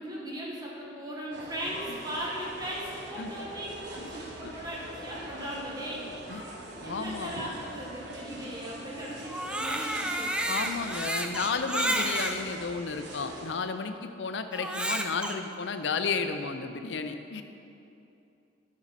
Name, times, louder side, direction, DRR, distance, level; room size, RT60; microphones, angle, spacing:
voice 1, 0.0-6.1 6.8-10.3, equal, 20° right, -5 dB, 1.7 m, -38 dB
sound 1, 1.3-13.5, right 1 dB, 70° right, 1.2 m, -43 dB
voice 2, 6.8-7.3 10.5-17.4, left 5 dB, 75° left, 8 dB, 0.5 m, -32 dB
Crying sobbing, 9.2-12.4 13.1-13.2 14.5-15.3, right 1 dB, 5° right, 0.4 m, -30 dB
10.0 x 6.3 x 4.2 m, 2.7 s
head